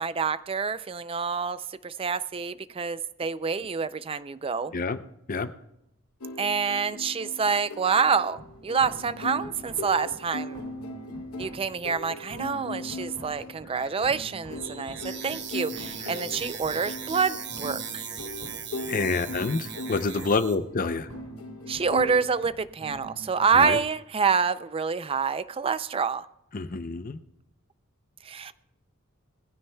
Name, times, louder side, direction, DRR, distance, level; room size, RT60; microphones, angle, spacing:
voice 1, 0.0-4.7 6.4-10.6 11.4-18.0 21.7-26.3 28.2-28.5, right 5 dB, 25° right, 15 dB, 0.4 m, -27 dB
sound 1, 6.2-22.2, left 1 dB, 80° left, 0.9 m, -39 dB
sound 2, 8.3-23.8, right 2 dB, 90° right, 2.5 m, -47 dB
sound 3, 14.5-20.5, right 7 dB, 50° right, 1.2 m, -39 dB
voice 2, 18.9-21.1 23.5-23.8 26.5-27.2, left 4 dB, 40° left, 11 dB, 0.6 m, -27 dB
20.5 x 15.0 x 2.3 m, 0.81 s
head